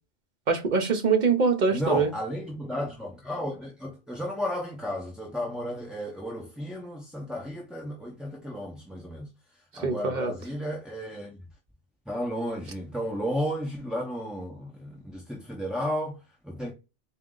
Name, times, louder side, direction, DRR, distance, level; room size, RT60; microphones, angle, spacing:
voice 1, 0.5-2.1 9.8-10.3, right 5 dB, 50° right, 0.8 m, -23 dB
voice 2, 1.7-11.5 12.1-16.7, equal, ahead, 0.5 m, -33 dB
4.1 x 2.5 x 3.7 m
omnidirectional pair, 1.1 m